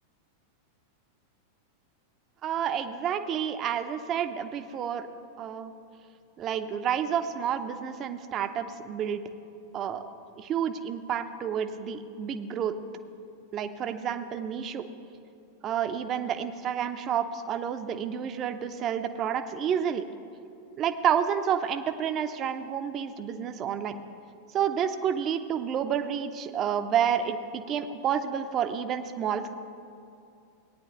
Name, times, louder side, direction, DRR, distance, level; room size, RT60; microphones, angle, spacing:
voice 1, 2.4-5.1 5.4-5.7 6.4-9.2 9.7-10.0 10.4-12.7 13.5-14.8 15.6-20.1 20.8-24.0 24.5-29.5, right 8 dB, 30° right, 9 dB, 0.6 m, -29 dB
18.0 x 9.6 x 2.9 m, 2.5 s
figure-of-eight pair, 90°, 0 cm